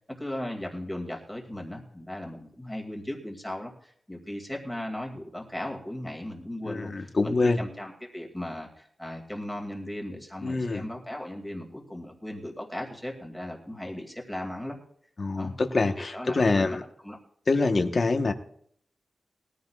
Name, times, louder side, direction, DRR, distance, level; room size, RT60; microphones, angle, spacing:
voice 1, 0.2-14.8 15.4-15.6 16.0-16.8 17.0-17.2, left 1 dB, 5° left, 0 dB, 2.3 m, -37 dB
voice 2, 6.6-7.6 10.4-10.8 15.2-16.8 17.5-18.3, left 3 dB, 35° left, 6 dB, 1.1 m, -25 dB
21.0 x 15.0 x 2.4 m, 0.65 s
wide cardioid pair, 170°, 0 cm